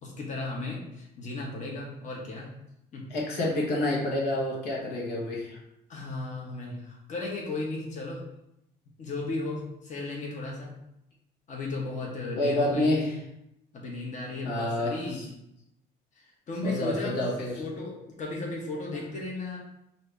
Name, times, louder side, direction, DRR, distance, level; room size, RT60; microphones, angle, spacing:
voice 1, 0.0-2.5 2.9-3.1 5.9-8.2 9.0-10.8 11.5-13.1 13.7-15.3 16.2-17.2 17.6-19.6, left 2 dB, 45° left, -2 dB, 1.3 m, -35 dB
voice 2, 3.1-5.6 12.3-13.1 14.4-15.0 16.6-17.6, left 1 dB, 80° left, -3 dB, 1.3 m, -28 dB
5.5 x 2.8 x 3.4 m, 0.81 s
cardioid pair, 110°, 17 cm